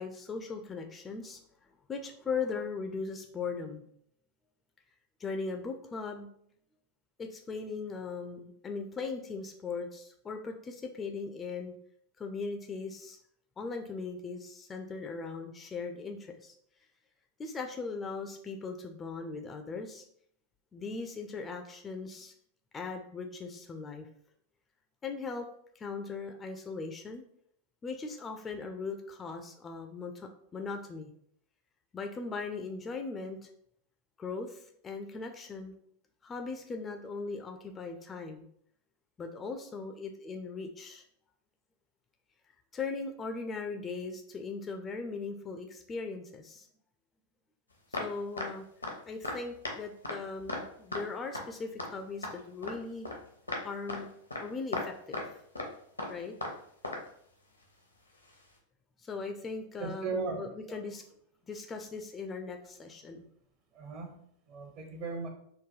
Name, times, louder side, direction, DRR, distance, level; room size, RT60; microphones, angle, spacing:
voice 1, 0.0-1.4 1.9-3.8 5.2-6.3 7.2-11.7 12.2-13.2 13.6-16.5 17.4-20.0 20.7-22.3 22.7-24.1 25.0-25.5 25.8-27.2 27.8-31.1 31.9-33.5 34.2-35.7 36.2-38.4 39.2-41.0 42.7-46.7 47.9-48.6 49.1-53.1 53.6-54.1 54.4-55.2 56.1-56.4 59.0-61.0 61.5-63.2, left 4 dB, 20° left, 4 dB, 0.3 m, -39 dB
sound 1, 47.9-48.5 48.8-49.0 49.2-49.4 49.6-49.8 50.0-50.2 50.5-50.6 50.9-51.1 51.3-51.5 51.8-51.9 52.2-52.8 53.1-53.2 53.5-53.6 53.9-54.0 54.3-54.4 54.7-55.3 55.6-55.7 56.0-56.6 56.8-57.1 58.3-58.4, left 2 dB, 80° left, 0.6 m, -36 dB
voice 2, 59.8-60.8 63.7-64.2 64.5-65.3, right 4 dB, 40° right, 3 dB, 0.8 m, -37 dB
3.7 x 2.2 x 3.0 m, 0.67 s
figure-of-eight pair, 90°, 0 cm